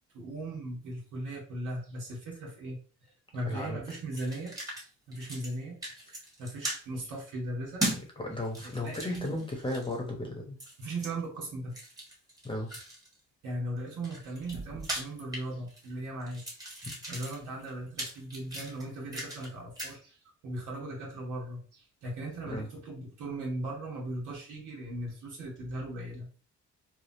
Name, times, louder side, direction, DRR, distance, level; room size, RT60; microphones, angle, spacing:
voice 1, 0.1-4.5 5.1-5.8 6.1-7.8 8.7-9.4 10.8-11.7 13.4-16.4 17.1-20.2 20.4-26.3, right 1 dB, 80° right, -2 dB, 1.7 m, -38 dB
voice 2, 3.5-3.8 8.2-10.6 12.4-12.7 16.8-16.9 22.5-22.7, left 1 dB, 15° left, 1 dB, 1.0 m, -35 dB
sound 1, 3.9-4.8 5.1-5.6 5.8-6.8 7.8-8.0 8.4-10.0 10.6-11.1 11.7-13.1 13.8-15.9 16.2-19.5 19.8-20.0, right 1 dB, 10° right, 1.3 m, -38 dB
3.5 x 2.2 x 2.7 m, 0.37 s
cardioid pair, 90°, 30 cm